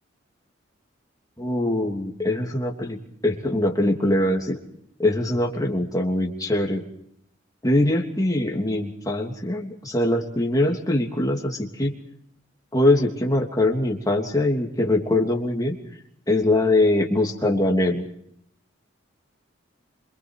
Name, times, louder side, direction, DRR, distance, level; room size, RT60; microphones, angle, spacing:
voice 1, 1.4-4.6 5.0-6.8 7.6-11.9 12.7-15.7 16.3-18.0, left 1 dB, 20° left, 1 dB, 3.1 m, -22 dB
27.0 x 24.5 x 4.8 m, 0.69 s
head